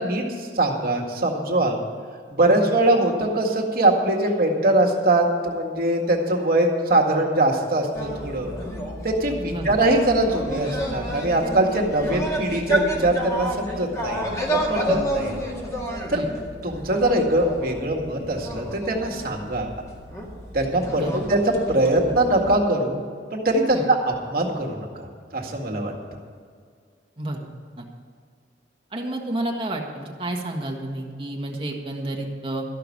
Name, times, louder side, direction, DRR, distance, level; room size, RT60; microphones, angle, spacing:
voice 1, 0.0-1.8 2.3-8.5 9.0-15.3 16.1-16.3 16.6-19.7 20.5-23.0 23.3-25.1 25.3-25.9, right 1 dB, 55° right, 0 dB, 1.9 m, -22 dB
sound 1, 7.9-22.6, equal, 20° left, 2.1 m, -31 dB
voice 2, 9.5-9.8 14.9-15.0 16.1-16.3 20.9-21.3 23.7-23.9 27.2-27.5 27.8-27.9 28.9-32.6, right 1 dB, 30° right, 0 dB, 1.6 m, -30 dB
13.5 x 5.9 x 9.7 m, 2.1 s
head